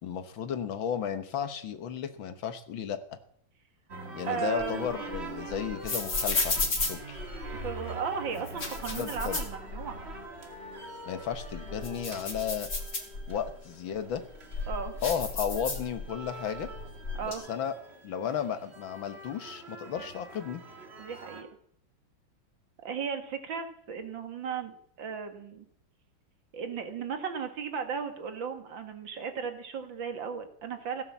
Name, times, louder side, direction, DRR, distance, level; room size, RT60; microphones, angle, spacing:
voice 1, 0.0-3.2 4.1-7.2 8.9-9.4 11.1-12.7 13.3-14.2 15.0-16.7 17.2-17.7 18.0-20.6, left 8 dB, 70° left, 10 dB, 1.9 m, -34 dB
sound 1, 3.9-21.4, right 2 dB, 30° right, 2.2 m, -44 dB
sound 2, 4.3-7.8 8.3-10.2 10.5-10.6 11.1-13.5 14.1-16.3 16.5-17.3, left 3 dB, 45° left, 3.0 m, -34 dB
voice 2, 4.3-4.9 7.5-10.0 14.7-14.9 17.2-17.4 21.0-21.5 22.8-25.7 26.5-31.0, right 6 dB, 65° right, 7 dB, 2.5 m, -35 dB
17.0 x 9.5 x 7.3 m, 0.65 s
omnidirectional pair, 2.2 m